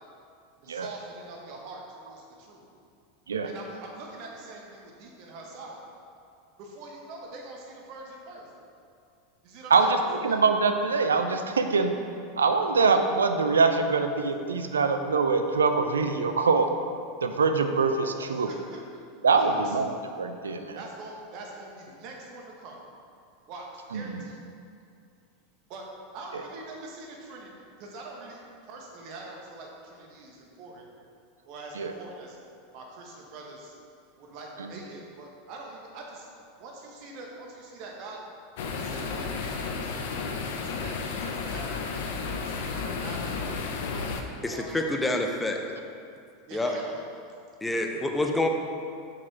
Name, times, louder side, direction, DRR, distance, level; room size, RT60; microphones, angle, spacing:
voice 1, 0.6-2.6 3.4-5.8 6.6-8.5 9.4-9.9 10.3-10.4 18.2-18.8 19.3-19.8 20.7-22.8 23.5-24.4 25.7-25.8 26.1-27.5 27.8-30.8 31.4-32.4 32.7-33.7 34.2-36.3 36.6-38.2 38.6-39.9 40.4-43.5 43.8-45.0 46.5-47.1, right 2 dB, 50° right, -1 dB, 1.3 m, -44 dB
voice 2, 9.7-11.9 12.4-16.7 17.2-18.5 19.2-19.9 20.2-20.8 23.9-24.2 31.8-31.9 34.6-34.7, right 4 dB, 80° right, 7 dB, 0.4 m, -24 dB
sound 1, 38.6-44.2, left 4 dB, 65° left, 0.6 m, -32 dB
voice 3, 44.4-45.6 46.5-46.7 47.6-48.5, left 2 dB, 10° left, 3 dB, 0.7 m, -27 dB
5.9 x 5.0 x 4.6 m, 2.4 s
figure-of-eight pair, 85°, 0 cm